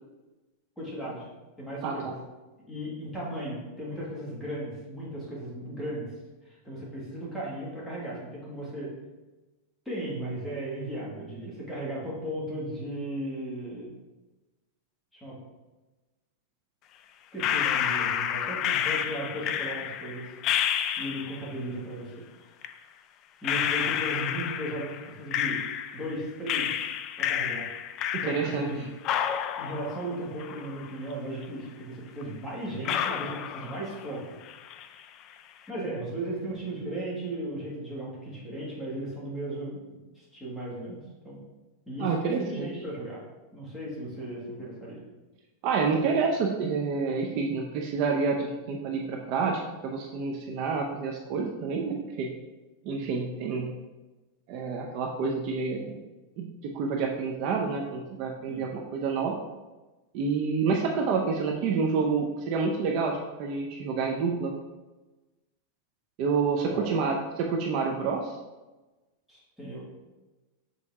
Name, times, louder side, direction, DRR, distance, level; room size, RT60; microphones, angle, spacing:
voice 1, 0.8-1.3 1.6-2.2 2.7-6.1 6.5-8.9 9.9-13.9 15.1-15.4 17.3-20.3 21.0-22.1 23.4-25.6 25.9-26.7 27.2-27.7 28.2-28.8 29.6-34.2 35.7-39.8 40.1-41.4 41.9-42.1 42.4-43.2 43.5-45.0 58.5-58.7 66.7-67.0 69.3-69.8, right 1 dB, ahead, -7 dB, 1.9 m, -36 dB
voice 2, 1.8-2.1 28.3-28.7 42.0-42.7 45.6-52.3 52.8-53.7 54.5-56.0 56.4-59.4 60.1-64.5 66.2-68.4, right 5 dB, 45° right, 1 dB, 0.6 m, -28 dB
sound 1, 17.4-21.5 22.6-22.7 23.4-26.1 26.5-28.7 29.0-31.1 31.4-31.5 32.2-32.3 32.8-34.2 34.4-35.0, left 9 dB, 35° left, 0.3 m, -30 dB
6.5 x 4.1 x 3.6 m, 1.1 s
supercardioid pair, 155°, 0 cm